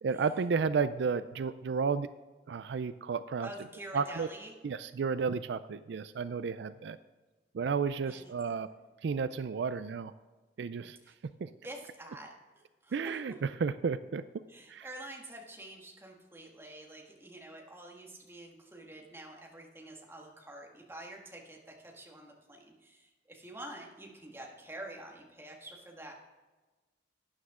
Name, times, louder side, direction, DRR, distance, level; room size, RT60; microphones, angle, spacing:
voice 1, 0.0-2.1 2.5-3.5 3.9-4.3 4.6-7.0 7.5-8.7 9.0-10.1 10.6-11.0 11.4-11.5 12.9-14.2 14.7-14.9, right 5 dB, 75° right, 14 dB, 0.4 m, -32 dB
voice 2, 3.4-4.6 8.1-8.3 11.0-11.1 11.6-12.3 12.8-13.3 14.5-26.1, right 1 dB, 15° right, 0 dB, 1.6 m, -47 dB
12.5 x 9.4 x 3.7 m, 1.2 s
head